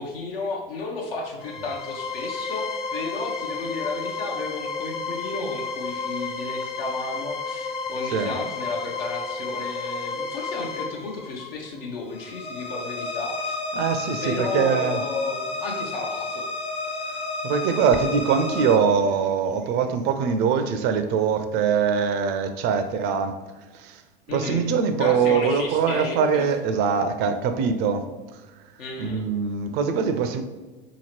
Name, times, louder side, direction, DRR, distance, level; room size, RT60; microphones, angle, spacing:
voice 1, 0.0-13.5 14.2-16.4 24.3-24.6 25.0-26.5 28.8-29.2, left 3 dB, 70° left, -1 dB, 0.7 m, -33 dB
sound 1, 1.4-18.8, left 3 dB, 20° left, 0.6 m, -31 dB
voice 2, 13.7-15.0 17.4-23.3 23.7-24.0 24.3-28.1 29.0-30.4, right 6 dB, 35° right, 8 dB, 0.4 m, -23 dB
3.9 x 2.9 x 2.9 m, 1.3 s
figure-of-eight pair, 90°, 30 cm